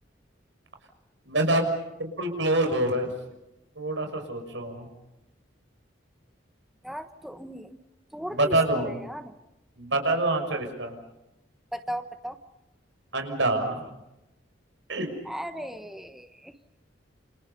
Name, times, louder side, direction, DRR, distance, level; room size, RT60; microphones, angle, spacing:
voice 1, 1.3-1.6 2.0-3.1 3.8-4.9 8.3-9.0 9.8-10.9 13.1-13.9 14.9-15.1, right 2 dB, 75° right, 5 dB, 6.2 m, -26 dB
voice 2, 6.8-7.8 8.1-9.3 11.7-12.4 15.3-16.5, equal, ahead, 7 dB, 1.2 m, -37 dB
29.0 x 29.0 x 5.5 m, 0.94 s
head